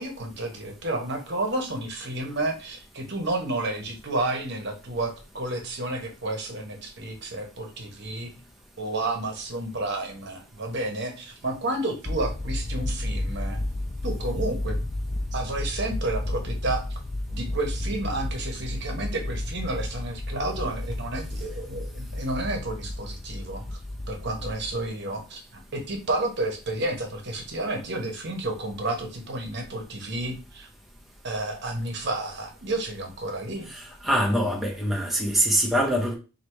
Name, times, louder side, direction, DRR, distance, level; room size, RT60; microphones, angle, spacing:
voice 1, 0.0-8.3 8.8-13.6 14.0-14.8 15.3-16.8 17.3-23.8 24.1-30.7 31.2-33.7, right 2 dB, 55° right, 0.9 m, -31 dB
sound 1, 12.0-24.9, left 1 dB, 15° left, 0.3 m, -32 dB
voice 2, 33.7-36.1, equal, ahead, 0.7 m, -24 dB
3.3 x 2.7 x 4.5 m
head